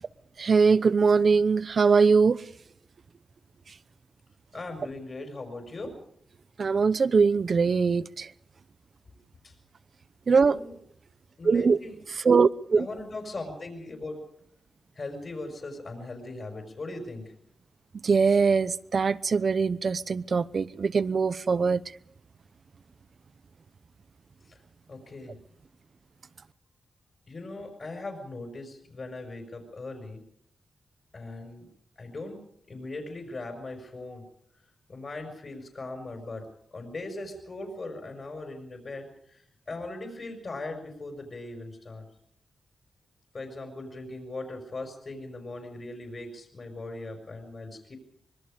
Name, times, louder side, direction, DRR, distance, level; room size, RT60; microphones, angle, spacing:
voice 1, 0.4-2.4 6.6-8.3 10.3-10.6 11.4-11.8 12.1-12.9 18.0-21.8, right 5 dB, 50° right, 0.8 m, -22 dB
voice 2, 4.5-5.9 9.4-9.5 10.4-10.8 11.4-12.0 12.8-14.2 15.0-17.3 24.9-25.3 27.3-30.2 31.1-31.7 32.0-32.4 32.7-34.2 34.9-36.5 36.7-39.4 39.7-42.0 43.3-48.0, left 2 dB, 40° left, 5.2 m, -39 dB
25.0 x 22.5 x 5.1 m
wide cardioid pair, 130°, 0 cm